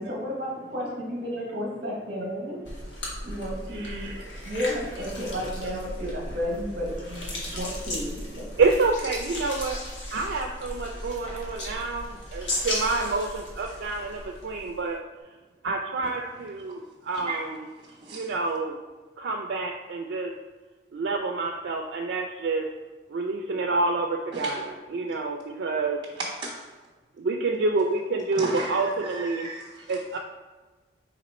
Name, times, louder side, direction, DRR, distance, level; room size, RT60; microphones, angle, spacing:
voice 1, 0.0-2.6 3.2-4.1 4.4-8.5, equal, 50° right, -4 dB, 0.9 m, -32 dB
sound 1, 2.7-14.9, left 1 dB, 85° left, 1.1 m, -36 dB
voice 2, 2.9-4.6 5.0-5.1 6.0-6.1 7.3-7.6 8.1-9.8 10.1-15.0 15.6-17.6 18.1-18.8 19.2-20.3 20.9-22.7 23.1-26.0 27.2-29.5 29.9-30.2, right 3 dB, 80° right, 2 dB, 0.4 m, -28 dB
voice 3, 17.8-18.3 24.3-24.6 26.2-26.7 28.3-30.2, right 2 dB, 25° right, -6 dB, 0.5 m, -36 dB
4.1 x 3.0 x 4.1 m, 1.3 s
head